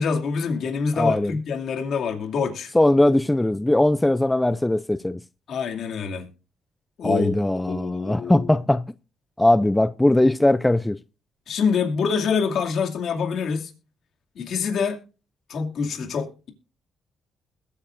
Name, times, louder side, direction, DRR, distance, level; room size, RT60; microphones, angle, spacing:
voice 1, 0.0-2.7 5.5-6.3 7.0-7.3 7.7-8.6 11.5-13.7 14.4-15.0 15.5-16.5, left 5 dB, 65° left, 2.4 m, -26 dB
voice 2, 1.0-1.3 2.7-5.2 7.0-8.9 9.4-11.0, left 1 dB, 10° left, 0.4 m, -20 dB
21.0 x 9.0 x 2.6 m
cardioid pair, 90°, 0 cm